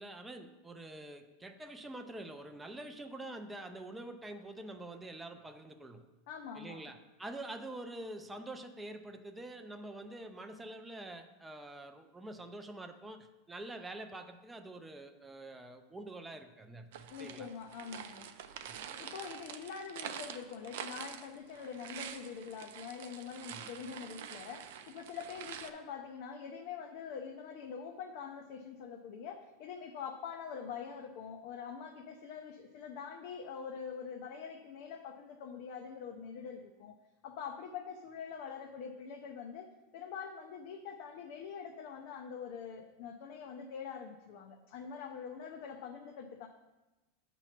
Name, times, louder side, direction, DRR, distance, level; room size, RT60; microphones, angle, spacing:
voice 1, 0.0-6.0 6.5-17.5 18.7-18.8 23.5-23.7, right 2 dB, 5° right, 6 dB, 0.4 m, -46 dB
voice 2, 6.3-6.8 17.1-18.3 19.0-36.9 37.2-46.5, left 6 dB, 55° left, 3 dB, 0.5 m, -44 dB
sound 1, 16.9-25.7, right 9 dB, 70° right, 0.4 m, -46 dB
7.7 x 3.0 x 5.8 m, 1.1 s
supercardioid pair, 155°, 0 cm